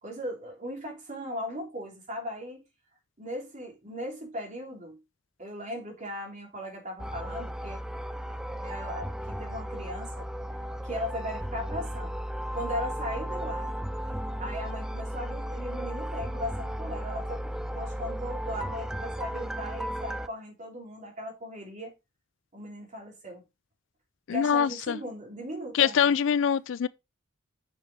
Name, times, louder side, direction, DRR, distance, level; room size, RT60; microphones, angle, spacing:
voice 1, 0.0-2.6 3.2-5.0 5.4-7.8 8.6-10.3 10.8-12.2 12.5-13.8 14.1-17.4 17.7-21.9 22.5-23.4 24.3-26.1, equal, 40° right, 3.4 m, -38 dB
sound 1, 7.0-20.3, equal, 5° right, 0.4 m, -35 dB
voice 2, 24.3-25.0 25.7-26.9, left 8 dB, 70° left, 0.4 m, -24 dB
6.8 x 6.5 x 3.5 m
head